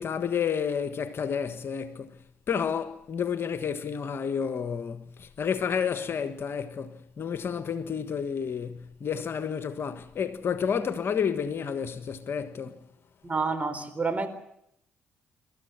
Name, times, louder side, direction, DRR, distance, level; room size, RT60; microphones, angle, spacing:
voice 1, 0.0-12.8, left 7 dB, 50° left, 1.5 m, -30 dB
voice 2, 13.2-14.3, right 4 dB, 25° right, 4.3 m, -28 dB
26.5 x 13.5 x 9.6 m
hypercardioid pair, 45°, 5 cm